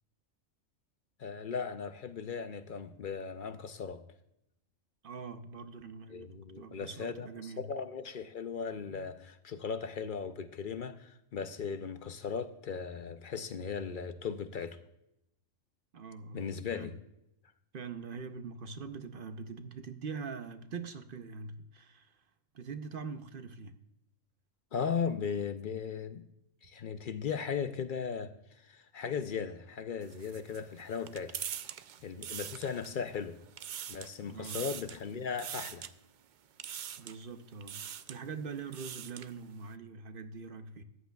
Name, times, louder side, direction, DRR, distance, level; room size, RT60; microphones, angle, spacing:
voice 1, 1.2-4.0 6.1-14.8 16.3-16.9 24.7-26.2 26.6-31.4 32.0-33.3 33.9-35.8, left 6 dB, 55° left, 0.6 m, -37 dB
voice 2, 5.0-7.7 15.9-16.9 17.7-22.2 22.5-23.8 34.3-34.6 37.0-40.8, right 5 dB, 50° right, 0.8 m, -43 dB
sound 1, 30.0-33.1 33.4-34.1 34.4-35.0 35.4-35.9 36.6-37.2 37.6-38.2 38.6-39.3, right 9 dB, 70° right, 0.4 m, -42 dB
14.0 x 10.5 x 2.3 m
omnidirectional pair, 1.3 m